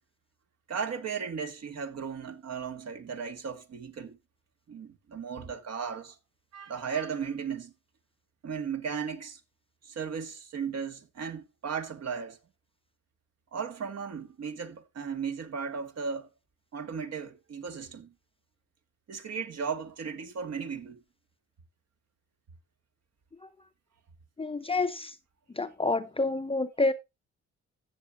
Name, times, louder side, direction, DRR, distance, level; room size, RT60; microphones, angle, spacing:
voice 1, 0.7-4.2 4.7-6.2 6.5-7.7 8.4-9.4 9.8-12.4 13.5-16.3 16.7-18.1 19.1-21.0, right 6 dB, 55° right, 1.8 m, -36 dB
voice 2, 24.4-25.1 25.6-26.9, left 3 dB, 20° left, 0.6 m, -28 dB
15.0 x 7.1 x 2.6 m
cardioid pair, 90°, 30 cm